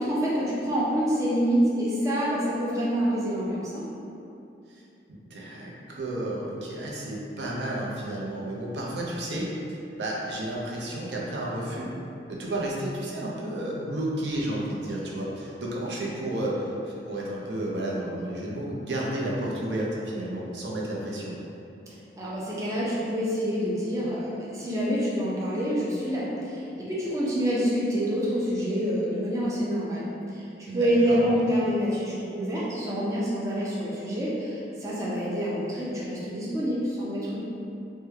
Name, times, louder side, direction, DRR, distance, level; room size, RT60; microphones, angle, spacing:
voice 1, 0.0-3.8 22.2-30.5 30.7-37.4, equal, 20° right, -8 dB, 0.5 m, -27 dB
voice 2, 5.1-11.9 12.3-21.3 30.7-31.5, right 1 dB, 80° right, -4 dB, 0.5 m, -32 dB
3.2 x 2.1 x 3.3 m, 2.7 s
head